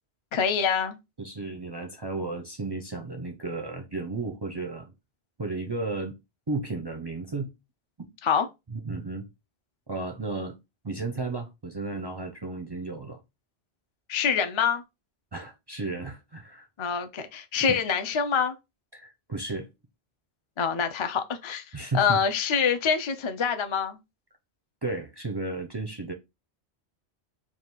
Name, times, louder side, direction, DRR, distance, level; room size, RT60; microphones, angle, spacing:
voice 1, 0.3-1.0 8.2-8.5 14.1-14.8 16.8-18.5 20.6-21.6 21.9-24.0, left 6 dB, 45° left, 0.4 m, -25 dB
voice 2, 1.2-4.9 5.4-6.2 6.5-7.5 8.0-8.1 8.7-9.3 9.9-10.6 10.8-13.2 15.3-16.7 18.9-19.7 21.7-22.2 24.8-26.1, right 3 dB, 35° right, 0.4 m, -33 dB
3.5 x 2.4 x 4.4 m
omnidirectional pair, 1.1 m